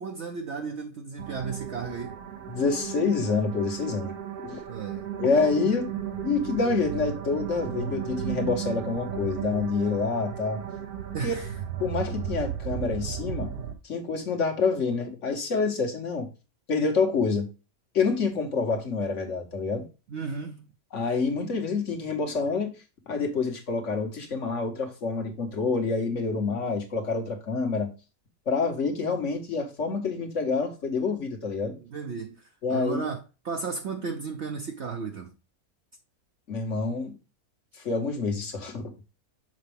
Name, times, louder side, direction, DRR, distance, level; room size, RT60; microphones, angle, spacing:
voice 1, 0.0-2.2 4.7-5.1 11.1-11.5 20.1-20.7 31.8-33.2 33.4-35.3, right 5 dB, 55° right, 0.9 m, -34 dB
sound 1, 1.2-13.7, right 9 dB, 90° right, 1.4 m, -35 dB
voice 2, 2.5-4.1 4.4-4.6 5.2-5.9 6.2-10.6 11.2-11.3 11.8-13.5 13.8-16.3 16.7-17.5 17.9-19.8 20.9-22.7 23.1-27.9 28.5-31.8 32.6-33.1 36.5-37.1 37.8-38.9, left 4 dB, 55° left, 1.7 m, -27 dB
6.6 x 5.0 x 3.4 m
omnidirectional pair, 1.5 m